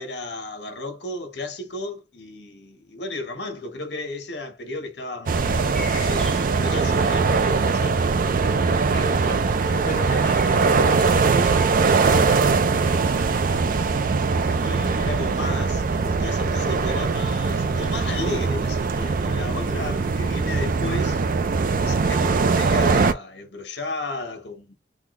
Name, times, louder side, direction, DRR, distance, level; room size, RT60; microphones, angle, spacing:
voice 1, 0.0-8.0 8.7-9.4 12.0-13.0 14.6-21.2 21.8-24.7, left 2 dB, 70° left, 1.3 m, -34 dB
sound 1, 5.3-23.1, right 4 dB, 50° right, 0.4 m, -21 dB
sound 2, 5.7-7.3 9.7-12.2, left 2 dB, 5° left, 0.7 m, -41 dB
voice 2, 8.8-11.6 13.0-13.4, left 1 dB, 55° left, 0.9 m, -36 dB
3.7 x 2.3 x 3.0 m
head